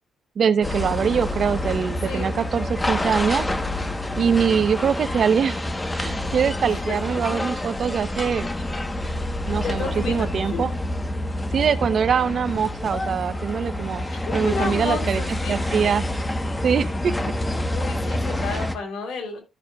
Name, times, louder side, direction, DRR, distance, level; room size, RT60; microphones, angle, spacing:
voice 1, 0.4-3.5 4.2-5.6 6.0-8.5 9.5-10.7 11.5-14.0 14.3-15.2 15.5-16.1 16.6-17.1 18.5-18.6, right 7 dB, 55° right, 0.7 m, -23 dB
sound 1, 0.6-18.8, left 1 dB, 15° left, 1.0 m, -27 dB
voice 2, 2.0-2.4 6.6-6.9 9.6-10.3 14.1-15.6 17.7-19.4, left 4 dB, 75° left, 3.3 m, -31 dB
13.5 x 6.4 x 2.3 m
cardioid pair, 90°, 0 cm